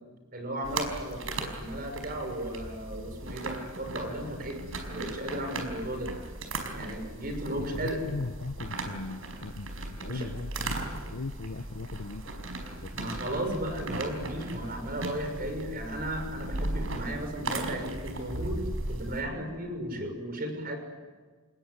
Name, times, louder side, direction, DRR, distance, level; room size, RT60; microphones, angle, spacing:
voice 1, 0.3-4.6 4.9-6.1 6.7-8.0 10.1-10.3 12.9-18.6 18.9-20.8, right 1 dB, 50° right, 5 dB, 6.2 m, -35 dB
sound 1, 0.6-19.2, right 2 dB, 85° right, 5.0 m, -37 dB
voice 2, 7.7-9.7 10.0-10.7 11.1-12.5 12.8-13.2 20.0-20.1, left 3 dB, 90° left, 9 dB, 0.9 m, -38 dB
27.5 x 20.5 x 9.7 m, 1.4 s
head